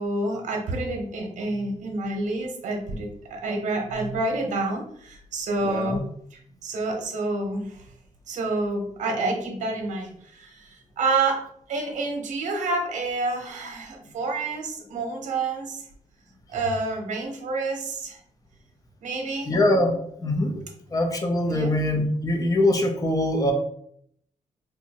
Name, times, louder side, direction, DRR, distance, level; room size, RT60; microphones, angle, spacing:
voice 1, 0.0-6.0 6.3-7.8 8.3-11.4 11.7-15.8 16.5-18.2 19.0-19.5 21.5-21.8, right 2 dB, 70° right, 2 dB, 0.9 m, -28 dB
voice 2, 5.6-6.0 19.5-19.9 20.2-20.5 20.9-23.5, left 1 dB, 25° left, 3 dB, 0.7 m, -23 dB
2.7 x 2.3 x 4.1 m, 0.67 s
cardioid pair, 100°, 13 cm